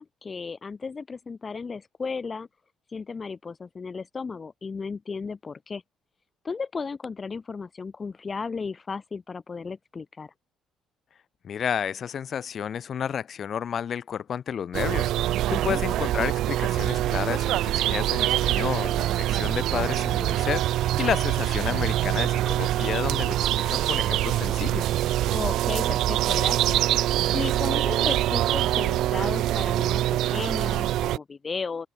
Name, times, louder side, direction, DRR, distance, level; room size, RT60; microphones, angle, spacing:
voice 1, 0.0-2.5 2.9-5.8 6.4-10.3 15.5-15.8 25.3-26.8 27.3-31.9, left 5 dB, 30° left, 7.6 m, -34 dB
voice 2, 11.4-15.1 15.5-24.9, left 8 dB, 50° left, 4.7 m, -31 dB
sound 1, 14.7-31.2, right 14 dB, 75° right, 2.0 m, -24 dB
open air
cardioid pair, 90°, 0 cm